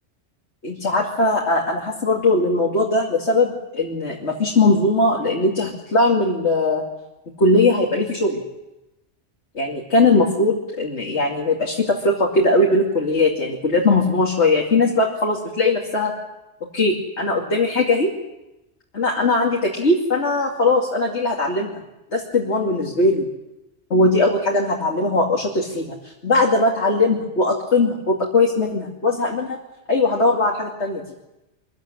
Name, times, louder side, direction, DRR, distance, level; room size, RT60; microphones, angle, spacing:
voice 1, 0.6-6.8 7.4-8.4 9.5-16.1 16.7-18.1 18.9-21.8 22.1-23.3 23.9-29.6 29.9-31.0, left 2 dB, 65° left, -2 dB, 2.9 m, -20 dB
25.0 x 15.5 x 9.8 m, 0.97 s
omnidirectional pair, 1.2 m